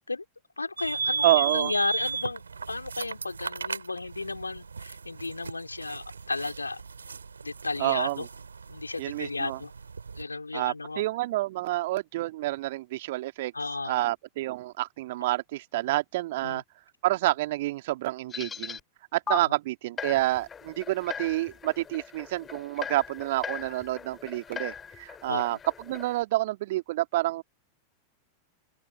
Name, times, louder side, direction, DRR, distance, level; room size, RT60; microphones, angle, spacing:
voice 1, 0.6-6.8 7.4-8.3 8.7-9.7 10.1-11.0 13.5-14.0 16.4-16.6 19.4-19.5 25.3-25.4, left 3 dB, 80° left, 4.0 m, -33 dB
sound 1, 0.8-10.2, right 5 dB, 75° right, 3.2 m, -35 dB
voice 2, 1.2-1.7 7.8-8.3 9.0-9.6 10.5-13.5 13.8-16.6 17.0-18.8 19.1-25.6 25.9-27.4, right 17 dB, 55° right, 2.0 m, -28 dB
sound 2, 18.3-18.8 19.3-19.4 20.0-26.2, left 6 dB, 20° left, 2.9 m, -39 dB
open air
figure-of-eight pair, 90°, 0 cm